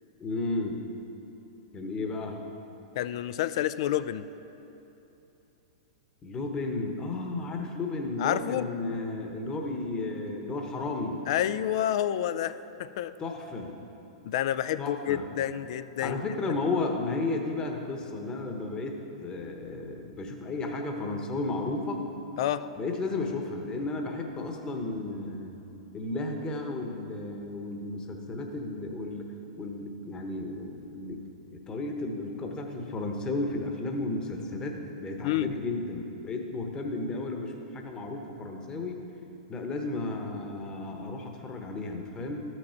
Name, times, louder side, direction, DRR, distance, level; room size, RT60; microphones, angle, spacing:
voice 1, 0.2-0.8 1.7-2.4 6.2-11.2 13.2-13.7 14.8-15.2 16.0-22.0 22.8-25.6 25.9-29.3 29.6-31.2 31.5-39.0 39.5-42.5, left 2 dB, 25° left, 3 dB, 1.0 m, -33 dB
voice 2, 3.0-4.3 8.2-8.7 11.3-13.1 14.2-16.2 22.4-22.7 35.2-35.5, left 11 dB, 60° left, 14 dB, 0.4 m, -29 dB
13.0 x 6.1 x 4.4 m, 2.9 s
hypercardioid pair, 115°, 3 cm